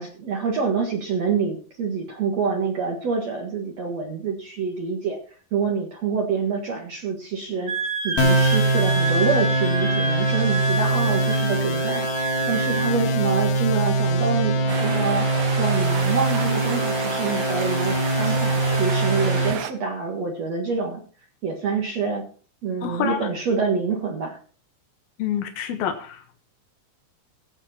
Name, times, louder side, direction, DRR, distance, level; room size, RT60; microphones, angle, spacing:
voice 1, 0.0-5.2 5.5-7.7 8.0-15.3 15.6-21.0 21.4-22.2 22.6-24.4, right 5 dB, 55° right, 0 dB, 2.7 m, -26 dB
Wind instrument woodwind instrument, 7.7-13.0, right 4 dB, 30° right, 3.6 m, -29 dB
sound 1, 8.2-19.5, right 1 dB, 65° left, 3.0 m, -23 dB
sound 2, 14.7-19.7, right 10 dB, 80° right, 2.5 m, -32 dB
voice 2, 22.8-23.3 25.2-26.4, left 8 dB, 90° left, 5 dB, 3.3 m, -28 dB
17.0 x 8.0 x 4.4 m, 0.39 s
omnidirectional pair, 4.1 m